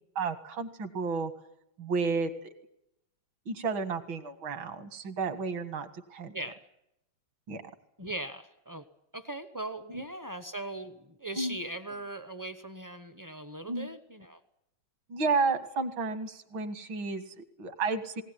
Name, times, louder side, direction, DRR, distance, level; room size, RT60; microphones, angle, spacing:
voice 1, 0.2-1.3 1.8-2.5 3.5-6.4 7.5-7.6 9.9-10.0 11.4-11.6 13.7-13.9 15.1-18.2, right 4 dB, 70° right, 9 dB, 2.4 m, -32 dB
voice 2, 8.0-8.8 9.1-14.4, right 1 dB, 25° right, 10 dB, 0.4 m, -39 dB
19.5 x 18.5 x 9.8 m, 0.83 s
omnidirectional pair, 2.2 m